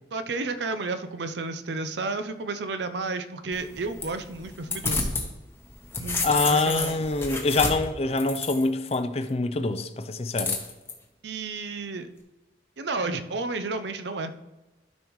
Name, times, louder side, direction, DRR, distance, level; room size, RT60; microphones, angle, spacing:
voice 1, 0.1-5.1 6.0-6.2 6.5-7.1 11.2-12.1 12.8-14.3, right 3 dB, 75° right, 0.6 m, -32 dB
sound 1, 3.5-5.3 5.6-9.0 10.4-10.9, left 3 dB, 15° left, 0.9 m, -30 dB
voice 2, 6.2-10.6, left 3 dB, 35° left, 0.5 m, -25 dB
12.5 x 5.2 x 3.1 m
head